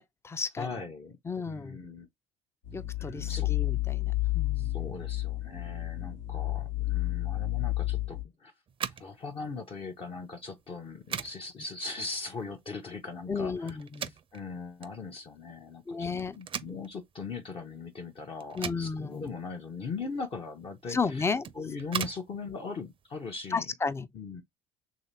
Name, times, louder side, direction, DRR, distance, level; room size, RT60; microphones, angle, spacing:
voice 1, 0.0-0.7 1.3-1.8 2.7-4.7 13.3-14.1 15.9-16.3 18.6-19.3 20.9-21.5 23.5-24.1, left 4 dB, 15° left, 0.5 m, -33 dB
voice 2, 0.6-1.2 1.5-2.1 3.0-3.5 4.6-8.5 9.0-13.8 14.3-23.7 24.1-24.4, left 4 dB, 35° left, 0.8 m, -40 dB
sound 1, 2.6-8.2, left 17 dB, 90° left, 1.6 m, -31 dB
sound 2, 8.7-23.7, right 8 dB, 35° right, 0.5 m, -43 dB
3.3 x 2.8 x 4.4 m
hypercardioid pair, 60°, 16 cm